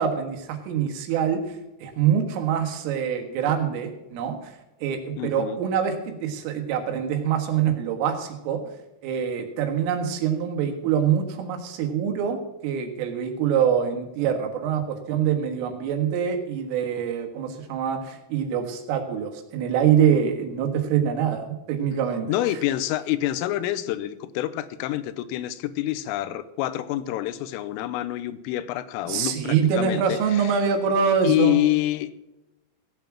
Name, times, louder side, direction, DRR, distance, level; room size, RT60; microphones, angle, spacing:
voice 1, 0.0-1.4 1.8-4.5 4.8-8.6 9.0-12.4 12.6-22.3 29.1-31.6, right 8 dB, 80° right, 5 dB, 4.1 m, -24 dB
voice 2, 5.2-5.6 22.3-30.6 31.2-32.1, left 14 dB, 90° left, 14 dB, 3.3 m, -27 dB
17.0 x 7.3 x 6.0 m, 0.93 s
omnidirectional pair, 5.7 m